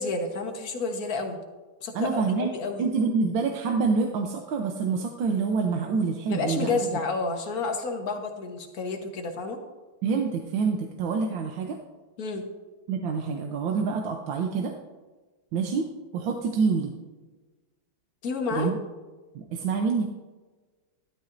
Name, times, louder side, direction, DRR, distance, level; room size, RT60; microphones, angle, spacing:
voice 1, 0.0-1.4 1.8-2.9 6.3-9.6 12.2-12.4 18.2-18.7, left 3 dB, 50° left, 4 dB, 1.5 m, -30 dB
voice 2, 1.9-2.5 2.8-6.7 10.0-11.8 12.9-14.7 15.5-15.9 16.1-16.9 18.5-18.8 19.3-20.0, right 5 dB, 75° right, 3 dB, 1.6 m, -26 dB
12.5 x 12.0 x 2.6 m, 1.3 s
omnidirectional pair, 2.2 m